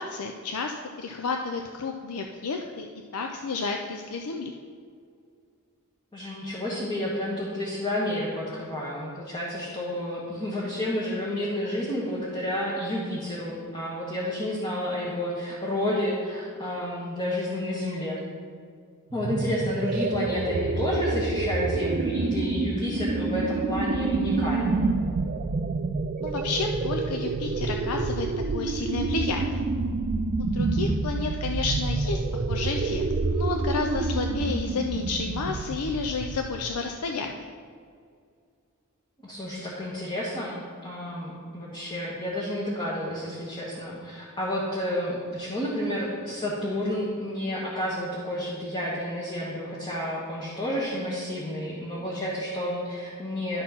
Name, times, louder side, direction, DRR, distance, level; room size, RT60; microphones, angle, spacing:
voice 1, 0.0-2.9 3.1-4.6 26.2-29.6 30.4-37.5, left 4 dB, 85° left, 3 dB, 0.5 m, -31 dB
voice 2, 6.1-18.2 19.1-24.8 39.2-53.6, left 1 dB, 20° left, -6 dB, 1.4 m, -30 dB
sound 1, 19.1-36.7, right 3 dB, 40° right, 0.4 m, -28 dB
11.5 x 4.4 x 5.6 m, 2.2 s
head